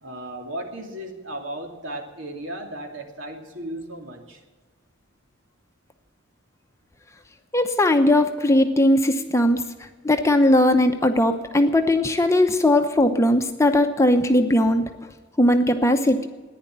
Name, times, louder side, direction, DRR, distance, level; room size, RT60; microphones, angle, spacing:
voice 1, 0.0-4.4, right 1 dB, 70° right, 3 dB, 2.8 m, -35 dB
voice 2, 7.5-9.6 10.0-14.9 15.4-16.3, left 1 dB, 15° left, 6 dB, 0.8 m, -19 dB
14.5 x 10.5 x 8.8 m, 1.3 s
head